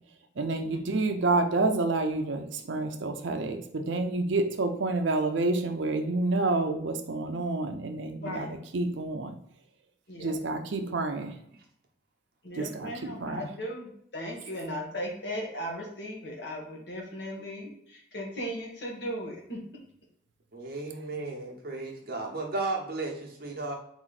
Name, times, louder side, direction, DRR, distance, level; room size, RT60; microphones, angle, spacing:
voice 1, 0.4-9.3 10.2-11.3 12.6-13.5, right 2 dB, 70° right, 6 dB, 0.5 m, -29 dB
voice 2, 8.1-8.5 10.1-10.3 12.4-19.6, equal, 60° left, -1 dB, 1.4 m, -37 dB
voice 3, 20.5-23.8, right 3 dB, 50° right, 0 dB, 1.0 m, -34 dB
4.1 x 3.0 x 3.9 m, 0.70 s
head